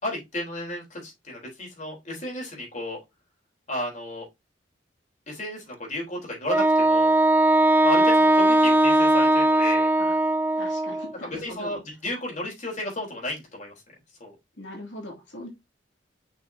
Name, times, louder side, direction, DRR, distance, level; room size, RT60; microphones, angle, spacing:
voice 1, 0.0-3.0 3.7-4.3 5.3-7.1 7.8-9.9 11.3-13.7 14.2-14.3, left 1 dB, 40° left, -2 dB, 4.0 m, -33 dB
Wind instrument woodwind instrument, 6.5-11.1, right 1 dB, 10° right, 0.4 m, -19 dB
voice 2, 10.6-11.8 14.6-15.5, left 1 dB, 85° left, -1 dB, 2.8 m, -40 dB
6.3 x 6.1 x 2.8 m, 0.20 s
head